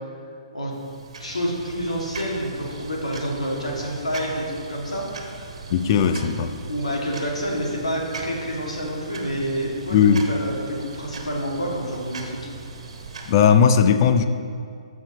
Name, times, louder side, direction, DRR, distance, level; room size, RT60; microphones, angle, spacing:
sound 1, 0.7-13.4, right 4 dB, 70° right, 1.3 m, -39 dB
voice 1, 1.2-5.1 6.7-10.0 10.3-12.5, equal, 90° left, -2 dB, 2.2 m, -28 dB
voice 2, 5.7-6.5 9.9-10.3 13.3-14.2, left 7 dB, 45° left, 10 dB, 0.6 m, -17 dB
14.5 x 6.1 x 3.0 m, 2.3 s
figure-of-eight pair, 130°, 3 cm